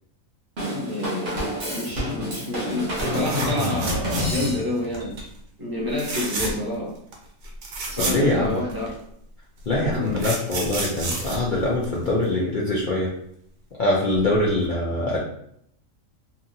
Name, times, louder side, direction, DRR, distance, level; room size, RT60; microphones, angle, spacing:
voice 1, 0.6-5.1 5.6-6.9 7.9-8.8 9.9-10.1, left 2 dB, 20° right, -5 dB, 0.6 m, -29 dB
Drum kit / Drum, 0.6-4.9, equal, 45° right, 0.8 m, -28 dB
sound 1, 2.9-4.6 4.9-5.3 5.9-6.8 7.1-7.2 7.4-8.9 9.7-12.2 14.2-14.3 14.6-14.7, right 2 dB, 80° right, 1.1 m, -30 dB
voice 2, 8.0-8.6 9.7-13.1 13.8-15.2, left 1 dB, 65° left, -5 dB, 0.5 m, -23 dB
2.8 x 2.4 x 2.6 m, 0.71 s
omnidirectional pair, 1.4 m